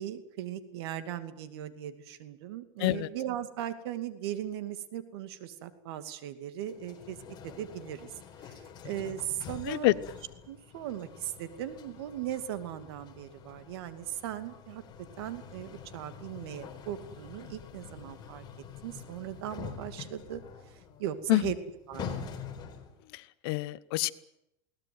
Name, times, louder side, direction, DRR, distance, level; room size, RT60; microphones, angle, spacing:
voice 1, 0.0-7.2 7.4-8.1 8.4-10.0 10.5-14.8 15.2-18.4 18.8-20.4 20.7-21.6 21.9-22.1, right 11 dB, 80° right, 10 dB, 2.5 m, -38 dB
sound 1, 6.6-23.0, left 6 dB, 35° left, 4.3 m, -46 dB
voice 2, 23.1-24.1, left 19 dB, 70° left, 16 dB, 1.1 m, -27 dB
22.0 x 18.0 x 9.5 m, 0.85 s
supercardioid pair, 135°, 13 cm